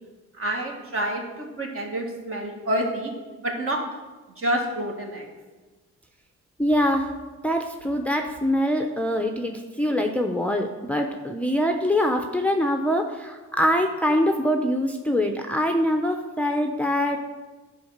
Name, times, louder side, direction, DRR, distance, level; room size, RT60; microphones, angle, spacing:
voice 1, 0.4-3.1 3.4-3.8 4.4-5.3, right 1 dB, 45° right, 1 dB, 2.0 m, -28 dB
voice 2, 6.6-7.1 7.4-9.5 9.8-17.2, equal, 5° left, 3 dB, 0.7 m, -24 dB
10.5 x 4.6 x 6.5 m, 1.3 s
cardioid pair, 90°, 30 cm